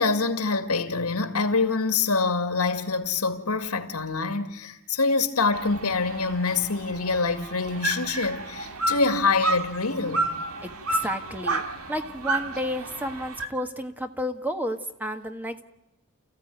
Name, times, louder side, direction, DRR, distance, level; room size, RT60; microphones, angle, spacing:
voice 1, 0.0-10.3, left 4 dB, 85° left, 2.1 m, -25 dB
sound 1, 5.5-13.5, right 2 dB, 75° right, 2.3 m, -31 dB
voice 2, 10.6-11.6 11.9-15.6, left 1 dB, 10° right, 1.5 m, -31 dB
30.0 x 15.5 x 9.3 m
head